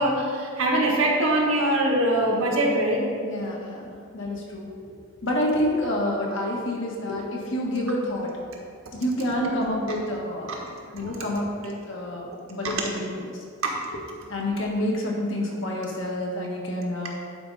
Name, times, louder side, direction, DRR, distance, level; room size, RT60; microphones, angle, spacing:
voice 1, 0.0-3.0 10.5-10.6 11.0-11.2, right 1 dB, 85° right, -1 dB, 1.5 m, -23 dB
voice 2, 3.2-3.8 4.1-4.9 5.2-8.3 8.9-10.6 10.9-13.3 14.3-17.1, left 1 dB, 65° left, -2 dB, 1.6 m, -28 dB
11.0 x 5.4 x 4.1 m, 2.2 s
head